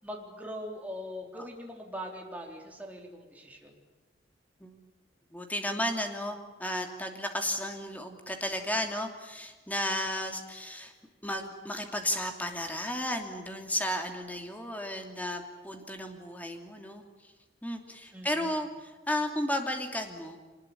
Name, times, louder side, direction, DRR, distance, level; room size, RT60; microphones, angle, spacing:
voice 1, 0.0-3.8 18.1-18.6, equal, 10° right, 0 dB, 3.9 m, -41 dB
voice 2, 5.3-10.9 11.2-17.3 17.6-20.4, left 1 dB, 10° left, 4 dB, 2.9 m, -34 dB
24.5 x 20.0 x 8.8 m, 1.3 s
head